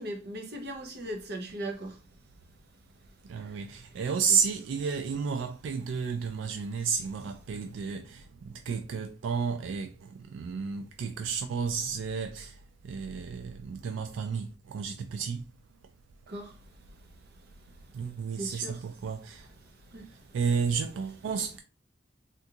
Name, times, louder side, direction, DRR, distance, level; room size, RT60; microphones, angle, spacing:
voice 1, 0.0-2.0 3.4-3.5 4.3-4.4 16.3-16.6 18.3-18.8 19.9-20.1, right 1 dB, 55° right, 0.8 m, -38 dB
voice 2, 3.3-9.9 10.3-12.5 12.9-15.4 17.9-19.5 20.3-21.6, right 6 dB, 80° right, 0.3 m, -32 dB
3.4 x 2.5 x 2.7 m
head